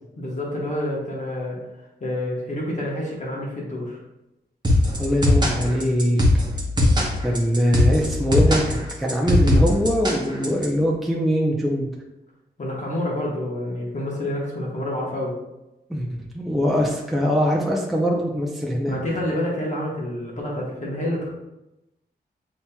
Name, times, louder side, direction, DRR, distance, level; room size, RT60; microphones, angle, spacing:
voice 1, 0.2-1.6 2.0-4.0 12.6-15.4 18.9-21.3, left 1 dB, 45° left, -4 dB, 1.1 m, -28 dB
sound 1, 4.6-10.7, left 1 dB, 25° right, 0.9 m, -19 dB
voice 2, 5.0-6.2 7.2-11.9 15.9-19.0, equal, ahead, -2 dB, 0.6 m, -22 dB
7.2 x 2.9 x 2.3 m, 0.94 s
wide cardioid pair, 115°, 18 cm